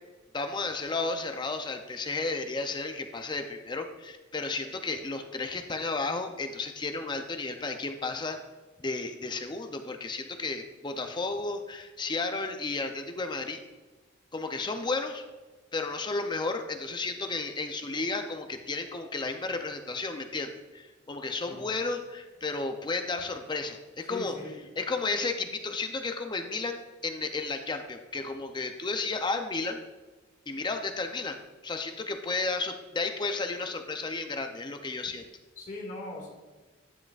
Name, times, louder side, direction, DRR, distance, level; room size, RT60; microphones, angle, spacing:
voice 1, 0.3-8.4 8.8-13.6 14.3-15.3 15.7-24.4 24.8-29.8 30.5-35.2, left 3 dB, 25° left, 6 dB, 0.5 m, -33 dB
voice 2, 24.1-24.6 35.6-36.3, left 1 dB, 40° left, -1 dB, 2.0 m, -39 dB
11.0 x 7.5 x 2.4 m, 1.3 s
head